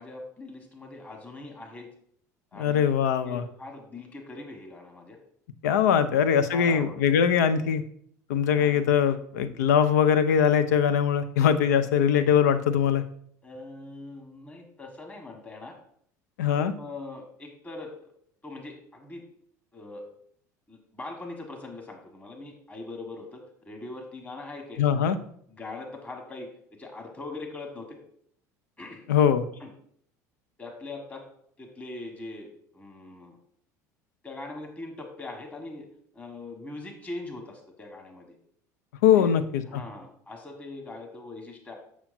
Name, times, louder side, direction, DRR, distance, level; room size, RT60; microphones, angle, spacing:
voice 1, 0.0-1.9 2.5-2.9 3.2-5.2 5.8-6.0 6.5-6.9 8.5-8.8 13.4-15.7 16.5-18.1 18.4-19.2 19.7-20.0 20.7-25.0 25.5-28.0 28.8-29.1 29.6-29.7 30.6-31.3 31.6-33.4 34.2-35.9 36.1-38.3 39.1-39.3 39.6-41.8, left 2 dB, 15° left, 1 dB, 1.5 m, -41 dB
voice 2, 2.5-3.4 5.6-7.8 8.3-13.0 16.4-16.7 24.8-25.2 29.1-29.4 39.0-39.8, left 8 dB, 75° left, 10 dB, 0.5 m, -22 dB
6.9 x 6.1 x 2.6 m, 0.65 s
hypercardioid pair, 70°, 9 cm